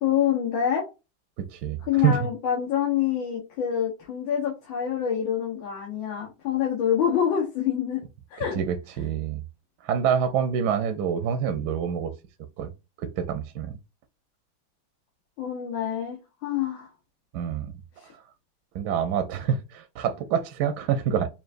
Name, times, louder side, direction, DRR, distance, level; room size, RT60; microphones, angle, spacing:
voice 1, 0.0-0.9 1.9-8.0 8.3-8.6 15.4-16.9 18.0-18.1, left 9 dB, 80° left, 1.9 m, -26 dB
voice 2, 1.4-2.3 8.5-9.4 9.8-12.1 12.6-12.7 13.0-13.8 17.3-17.7 18.7-21.3, right 8 dB, 70° right, 1.1 m, -26 dB
5.8 x 2.5 x 2.5 m
omnidirectional pair, 2.2 m